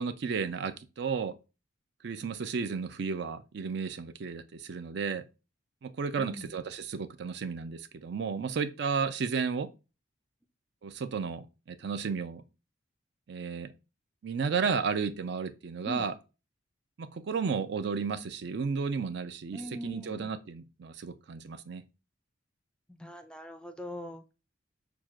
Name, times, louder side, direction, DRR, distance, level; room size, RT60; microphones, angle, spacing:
voice 1, 0.0-1.3 2.0-5.2 5.8-9.7 10.8-12.4 13.3-13.7 14.2-16.1 17.0-21.8, right 5 dB, 60° right, 0.4 m, -33 dB
voice 2, 6.2-6.5 15.9-16.1 19.5-20.3 23.0-24.3, equal, 5° left, 0.3 m, -41 dB
6.0 x 2.4 x 2.4 m
head